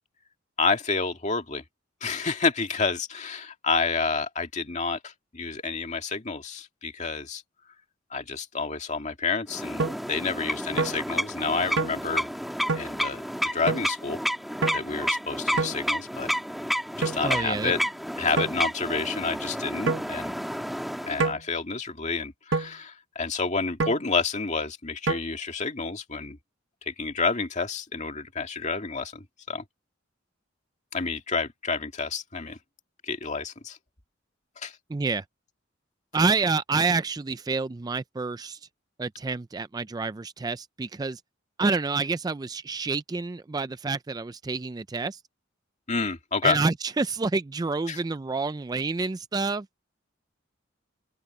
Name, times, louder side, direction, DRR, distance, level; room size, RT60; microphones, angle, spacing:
voice 1, 0.6-1.6 2.0-7.4 8.1-12.3 12.7-13.2 13.5-14.2 14.7-16.3 17.0-17.8 18.2-20.4 21.0-26.4 26.8-29.6 30.9-32.6 33.0-33.8 34.6-34.8 45.9-46.6 47.9-48.0, left 4 dB, 35° left, 2.2 m, -29 dB
sound 1, 9.5-21.3, equal, ahead, 2.1 m, -31 dB
sound 2, 9.8-10.0 10.8-11.0 11.8-12.0 12.7-12.9 13.7-13.8 14.6-14.8 15.6-15.8 17.0-17.2 18.4-18.6 19.9-20.1 21.2-21.4 22.5-22.7 23.8-24.0 25.1-25.2, right 4 dB, 70° right, 0.9 m, -26 dB
voice 2, 17.2-17.7 34.9-35.2 36.1-38.6 39.0-41.2 41.6-45.2 46.4-49.7, right 4 dB, 20° right, 0.3 m, -28 dB
open air
head